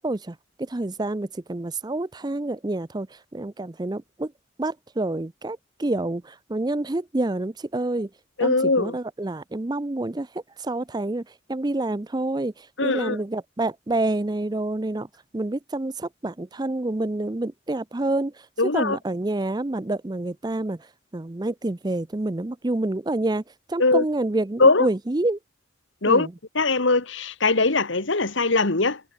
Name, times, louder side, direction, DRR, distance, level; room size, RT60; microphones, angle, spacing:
voice 1, 0.0-4.3 4.6-8.1 8.4-15.1 15.3-18.5 18.7-23.4 23.7-25.4 26.1-26.3, right 2 dB, 20° right, 0.5 m, -28 dB
voice 2, 8.4-9.0 12.8-13.2 18.6-19.0 23.8-24.0 24.6-24.9 26.0-26.3 26.6-29.0, left 3 dB, 70° left, 1.8 m, -21 dB
head